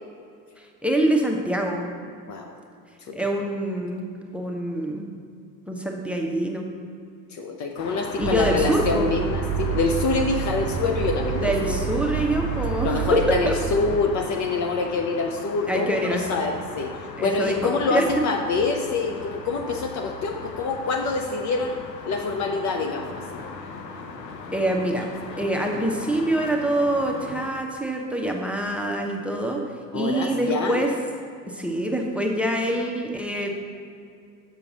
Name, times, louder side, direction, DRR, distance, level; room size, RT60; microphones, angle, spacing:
voice 1, 0.6-1.9 3.1-4.0 4.3-5.1 5.7-6.7 8.2-9.1 11.4-13.1 13.5-13.6 15.7-16.4 17.2-18.0 24.5-25.1 25.4-29.6 29.9-30.9 31.5-33.5, right 1 dB, 5° right, 1 dB, 0.8 m, -25 dB
voice 2, 2.3-2.6 3.1-3.2 7.3-11.8 12.8-21.7 22.0-23.4 29.9-30.9, left 4 dB, 35° left, 4 dB, 0.6 m, -26 dB
sound 1, 7.8-27.5, left 4 dB, 85° left, 0.7 m, -38 dB
sound 2, 8.2-14.3, right 9 dB, 30° right, 0.4 m, -28 dB
6.8 x 6.2 x 4.0 m, 2.4 s
figure-of-eight pair, 65°, 48 cm